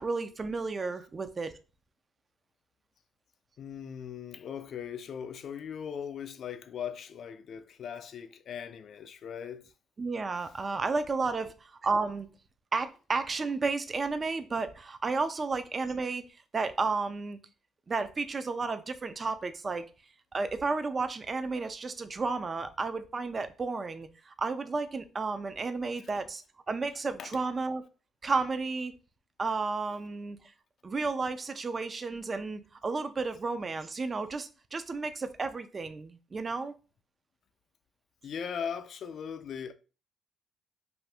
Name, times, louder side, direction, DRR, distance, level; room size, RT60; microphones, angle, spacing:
voice 1, 0.0-1.5 10.0-12.3 12.7-16.3 16.5-17.4 17.9-19.9 20.3-27.8 28.2-28.9 29.4-30.4 30.8-36.7, right 4 dB, 35° right, 0.3 m, -32 dB
voice 2, 3.6-9.7 27.2-27.4 38.2-39.7, left 7 dB, 65° left, 0.4 m, -39 dB
2.7 x 2.5 x 3.3 m
cardioid pair, 90°, 0 cm